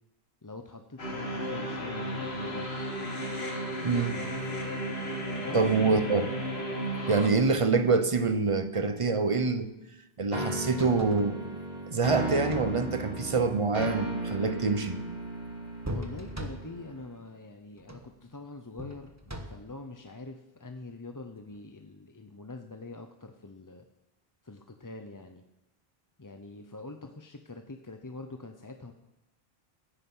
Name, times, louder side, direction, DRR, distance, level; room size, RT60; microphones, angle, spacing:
voice 1, 0.4-2.7 5.4-6.0 15.9-19.1 19.5-23.8 24.4-25.4 26.2-28.9, left 2 dB, 20° left, 0.7 m, -44 dB
sound 1, 1.0-7.3, equal, 75° left, 2.3 m, -34 dB
voice 2, 3.8-4.2 5.5-6.3 7.1-9.7 10.2-11.4 11.9-15.0, right 4 dB, 35° right, 0.8 m, -26 dB
sound 2, 10.3-17.2, right 1 dB, 40° left, 2.9 m, -35 dB
sound 3, 10.5-11.3 12.3-12.9 13.6-14.4 15.8-16.9 17.8-18.2 18.8-19.8 21.5-21.6, equal, 15° right, 1.1 m, -40 dB
15.5 x 9.8 x 5.6 m
omnidirectional pair, 1.1 m